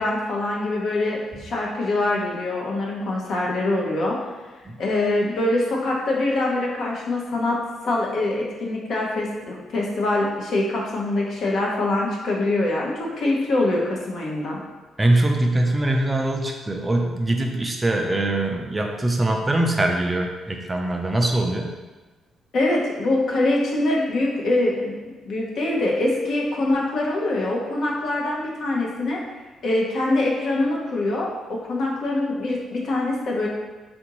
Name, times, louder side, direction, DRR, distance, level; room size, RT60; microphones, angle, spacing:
voice 1, 0.0-4.2 4.8-7.6 7.8-14.6 22.5-24.8 25.3-29.2 29.6-33.5, left 2 dB, 65° left, -2 dB, 0.8 m, -24 dB
voice 2, 15.0-21.7, right 1 dB, 20° right, 2 dB, 0.4 m, -22 dB
3.5 x 2.6 x 2.9 m, 1.2 s
cardioid pair, 90°, 0 cm